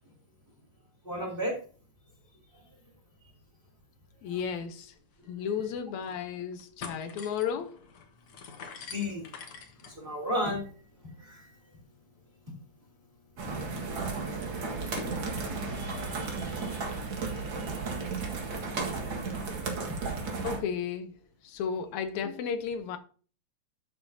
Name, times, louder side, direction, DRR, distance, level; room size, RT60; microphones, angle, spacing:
voice 1, 1.0-1.5 8.9-9.2 10.0-10.6 11.2-11.5 15.3-16.8 17.2-17.7, left 1 dB, 15° right, 3.2 m, -35 dB
voice 2, 4.2-4.9 5.3-7.8 20.4-21.1 21.4-23.0, left 7 dB, 75° left, 2.0 m, -33 dB
sound 1, 4.8-4.9 5.2-5.3 5.8-6.2 6.5-15.2, left 5 dB, 55° left, 1.8 m, -48 dB
sound 2, 13.4-20.6, right 4 dB, 45° right, 2.1 m, -34 dB
12.5 x 6.7 x 2.8 m
omnidirectional pair, 3.6 m